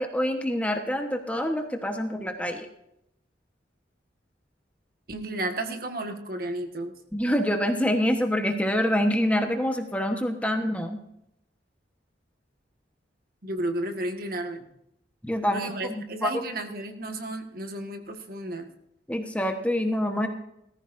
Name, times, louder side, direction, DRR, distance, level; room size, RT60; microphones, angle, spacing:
voice 1, 0.0-2.7 7.1-11.0 15.2-16.3 19.1-20.3, equal, 5° left, 4 dB, 1.1 m, -26 dB
voice 2, 5.1-6.9 13.4-14.7 15.5-18.7, right 1 dB, 55° right, 5 dB, 1.6 m, -32 dB
18.5 x 14.0 x 2.6 m, 0.79 s
head